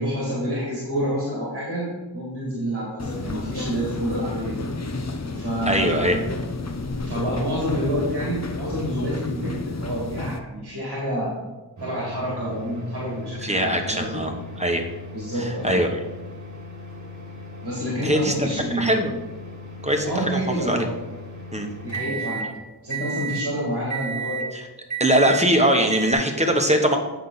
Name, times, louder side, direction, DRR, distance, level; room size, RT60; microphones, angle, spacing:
voice 1, 0.0-4.6 5.3-6.1 7.0-11.4 11.8-14.2 15.1-15.8 17.6-18.9 20.0-20.9 21.8-22.5 22.8-24.5, equal, 85° right, -5 dB, 2.2 m, -28 dB
sound 1, 3.0-10.4, left 3 dB, 40° left, 0.6 m, -31 dB
voice 2, 5.7-6.2 13.4-14.3 14.6-14.9 15.4-15.9 18.0-19.1 19.8-20.8 21.5-21.7 24.5-24.6 25.0-27.0, right 1 dB, 15° right, 4 dB, 1.0 m, -21 dB
sound 2, 11.8-22.5 22.9-23.5 23.9-24.5 24.9-25.5 25.9-26.1, right 3 dB, 50° right, 1.4 m, -35 dB
8.3 x 5.5 x 4.0 m, 1.1 s
wide cardioid pair, 60°, 39 cm